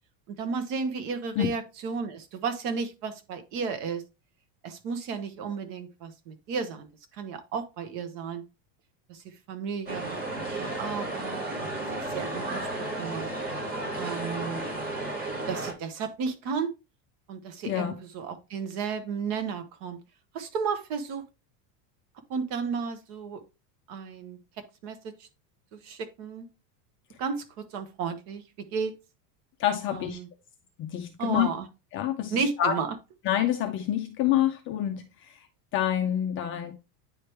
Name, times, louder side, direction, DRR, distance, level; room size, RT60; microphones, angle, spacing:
voice 1, 0.3-4.0 4.6-6.9 7.2-8.4 9.1-11.7 12.0-13.3 14.0-14.6 15.0-15.1 15.5-16.7 17.3-20.0 20.3-21.2 22.3-23.4 23.9-24.4 24.8-25.3 25.7-26.5 27.2-28.4 28.7-28.9 29.9-30.3 31.2-31.7 32.3-32.9, right 5 dB, 55° right, 1.3 m, -33 dB
sound 1, 9.9-15.7, right 2 dB, 20° right, 2.0 m, -33 dB
voice 2, 29.6-30.2 30.8-31.5 31.9-32.8 33.2-35.5 35.7-36.7, left 11 dB, 30° left, 0.4 m, -27 dB
9.3 x 3.2 x 3.3 m
supercardioid pair, 155°, 48 cm